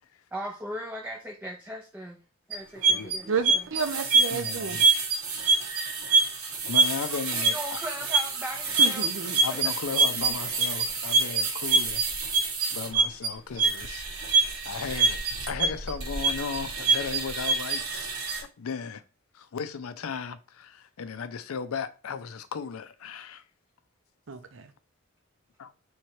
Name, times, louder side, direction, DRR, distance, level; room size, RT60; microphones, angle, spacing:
voice 1, 0.3-2.2 2.5-3.6 7.1-9.1 9.5-9.7, equal, 10° right, 0.4 m, -38 dB
sound 1, 2.5-18.4, right 4 dB, 85° right, 1.1 m, -25 dB
voice 2, 3.3-4.8 8.8-9.4 24.3-24.7, right 5 dB, 60° right, 0.6 m, -31 dB
voice 3, 4.3-4.8 6.7-7.5 9.4-12.3 12.7-14.0 14.6-15.2 15.5-19.0 19.3-23.4 25.6-25.7, left 6 dB, 85° left, 0.5 m, -36 dB
3.6 x 3.1 x 4.4 m
head